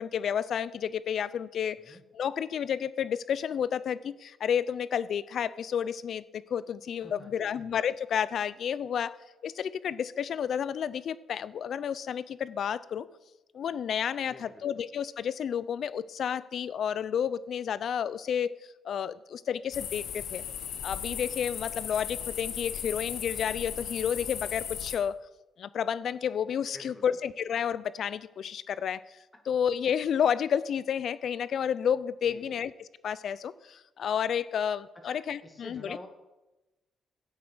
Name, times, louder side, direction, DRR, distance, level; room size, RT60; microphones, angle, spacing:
voice 1, 0.0-9.2 9.4-13.1 13.5-18.6 18.8-20.4 20.8-25.2 25.6-29.0 29.5-36.0, left 8 dB, 60° left, 18 dB, 0.5 m, -31 dB
voice 2, 7.0-7.6 14.3-14.7 26.7-27.0 29.3-29.4 32.2-32.6 35.0-36.1, left 1 dB, 20° left, 4 dB, 2.0 m, -48 dB
sound 1, 19.7-25.0, left 8 dB, 85° left, 1.3 m, -36 dB
11.5 x 8.3 x 6.2 m, 1.0 s
cardioid pair, 90°, 0 cm